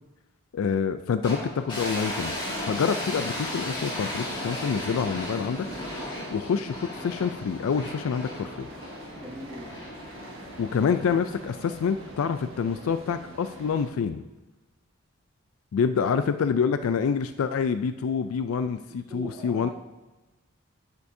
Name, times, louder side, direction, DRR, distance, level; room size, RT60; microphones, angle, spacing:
voice 1, 0.5-2.4 2.7-5.7 6.3-8.7 10.6-14.2 15.7-19.7, left 6 dB, 80° left, 10 dB, 0.3 m, -27 dB
sound 1, 1.2-12.5, left 1 dB, 20° left, 2.0 m, -36 dB
sound 2, 3.0-13.9, right 1 dB, 70° right, 1.3 m, -46 dB
voice 2, 9.2-9.8 16.1-16.2 18.9-19.7, equal, 20° right, -3 dB, 1.3 m, -41 dB
9.5 x 8.1 x 2.7 m, 1.1 s
head